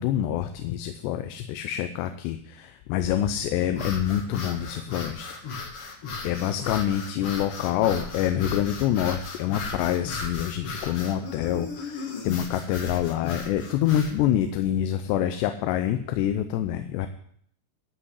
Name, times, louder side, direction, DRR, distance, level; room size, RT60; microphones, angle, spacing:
voice 1, 0.0-5.3 6.2-17.1, left 11 dB, 85° left, 8 dB, 2.8 m, -26 dB
sound 1, 3.7-14.2, left 4 dB, 60° left, 1.5 m, -36 dB
12.5 x 5.7 x 8.1 m, 0.65 s
omnidirectional pair, 4.9 m